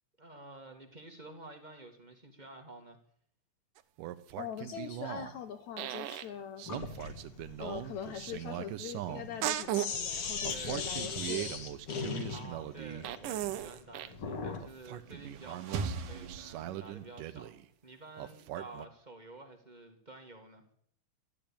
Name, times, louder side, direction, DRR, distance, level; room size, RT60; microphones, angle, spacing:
voice 1, 0.2-3.0 10.5-11.0 12.3-17.6 17.8-20.6, right 2 dB, 20° right, 4 dB, 1.3 m, -50 dB
sound 1, 3.8-5.4 5.8-6.3 6.6-9.9 10.4-14.2 14.6-17.6 18.2-18.9, right 13 dB, 85° right, 2.5 m, -39 dB
voice 2, 4.4-6.7 7.6-11.5, left 9 dB, 70° left, 9 dB, 2.0 m, -42 dB
Sink (filling or washing), 6.7-14.7, left 5 dB, 45° left, 2.3 m, -39 dB
sound 2, 14.8-17.2, right 5 dB, 70° right, 2.6 m, -39 dB
13.5 x 12.0 x 8.8 m, 0.65 s
omnidirectional pair, 3.8 m